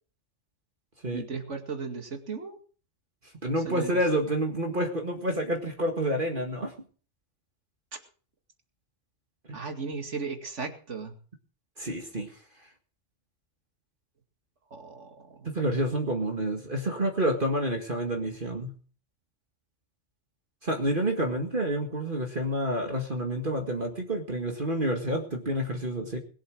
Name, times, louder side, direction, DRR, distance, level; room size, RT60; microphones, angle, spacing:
voice 1, 1.1-2.6 3.7-3.9 9.5-11.1 14.7-15.5, right 4 dB, 70° right, 5 dB, 2.6 m, -36 dB
voice 2, 3.4-6.7 11.8-12.3 15.5-18.7 20.6-26.2, right 1 dB, 45° right, 3 dB, 2.1 m, -28 dB
21.0 x 7.9 x 6.2 m, 0.41 s
omnidirectional pair, 1.3 m